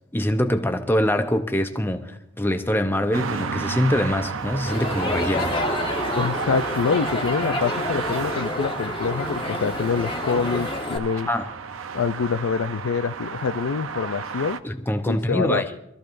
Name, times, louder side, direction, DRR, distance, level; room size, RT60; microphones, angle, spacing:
voice 1, 0.1-5.5 11.3-11.5 14.6-15.7, left 1 dB, 10° left, 0.7 m, -24 dB
sound 1, 3.1-14.6, right 5 dB, 80° right, 0.6 m, -32 dB
Crowd, 4.7-11.0, left 2 dB, 25° left, 1.4 m, -29 dB
voice 2, 6.2-11.3 11.9-14.6 15.1-15.7, left 5 dB, 90° left, 0.4 m, -25 dB
24.5 x 14.0 x 2.6 m
head